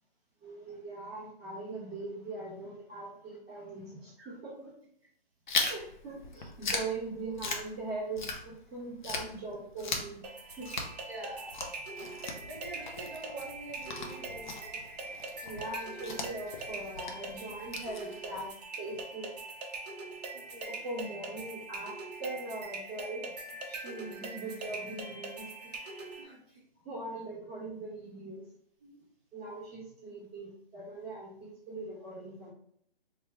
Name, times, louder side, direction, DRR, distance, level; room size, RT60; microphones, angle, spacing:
voice 1, 0.4-4.5 5.6-10.2 10.6-10.9 15.4-19.4 20.7-23.3 23.7-25.7 26.8-28.5 29.3-32.5, right 2 dB, 5° left, -15 dB, 0.6 m, -41 dB
voice 2, 4.2-4.7 5.6-5.8 11.1-11.5 12.4-14.8 20.3-20.8 26.2-26.6 28.8-29.0 29.4-29.5, right 1 dB, 20° right, -6 dB, 1.0 m, -46 dB
Chewing mastication, 5.5-8.7 9.0-18.5, left 3 dB, 50° left, 0.6 m, -38 dB
sound 1, 10.2-26.2, right 3 dB, 40° right, 0.7 m, -42 dB
3.2 x 2.3 x 3.1 m, 0.69 s
hypercardioid pair, 165°, 31 cm